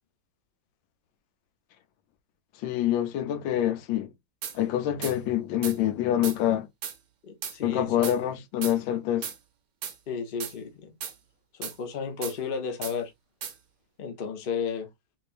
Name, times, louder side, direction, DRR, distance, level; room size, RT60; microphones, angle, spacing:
voice 1, 2.6-4.1 4.5-6.7 7.6-9.3, left 11 dB, 85° left, 1.4 m, -26 dB
sound 1, 4.4-4.6 5.0-5.2 5.6-5.8 6.2-6.4 6.8-7.0 7.4-7.6 8.0-8.2 8.6-8.8 9.2-9.4 9.8-10.0 10.4-10.5 11.0-11.1 11.6-11.8 12.2-12.4 12.8-13.0 13.4-13.5, right 8 dB, 60° right, 0.8 m, -35 dB
voice 2, 7.2-8.2 10.1-10.9 11.5-13.1 14.0-14.9, left 6 dB, 45° left, 0.7 m, -33 dB
3.6 x 3.2 x 2.5 m
omnidirectional pair, 2.0 m